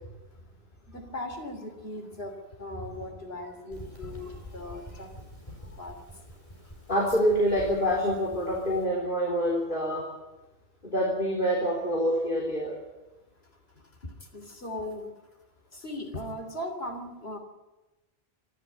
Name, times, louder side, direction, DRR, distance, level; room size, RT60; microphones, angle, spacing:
voice 1, 0.9-5.2 5.5-6.2 6.6-6.7 13.8-13.9 14.2-15.1 15.7-17.4, left 1 dB, 75° left, 5 dB, 3.6 m, -39 dB
sound 1, 3.7-8.8, left 1 dB, 30° left, 5.1 m, -47 dB
voice 2, 6.9-10.1 10.8-12.8, equal, 50° left, -1 dB, 3.8 m, -26 dB
26.0 x 12.5 x 9.4 m, 1.1 s
omnidirectional pair, 1.1 m